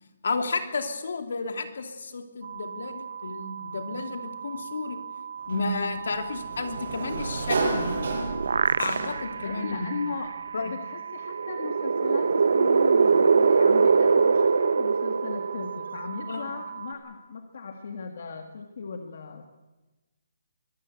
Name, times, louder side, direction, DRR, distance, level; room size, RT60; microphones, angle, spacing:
voice 1, 0.2-5.0 5.5-8.3 8.8-9.9 10.5-10.7 16.3-16.5, left 3 dB, 65° left, 7 dB, 2.9 m, -32 dB
sound 1, 2.4-16.9, right 7 dB, 35° right, 2.0 m, -39 dB
Sliding door, 5.5-9.4, right 3 dB, 60° right, 7.0 m, -31 dB
sound 2, 7.9-9.4 9.9-10.0 11.3-16.1, right 5 dB, 75° right, 0.8 m, -22 dB
voice 2, 9.4-19.5, left 5 dB, 50° left, 5 dB, 1.7 m, -37 dB
23.5 x 15.5 x 8.2 m, 1.1 s
hypercardioid pair, 175°, 0 cm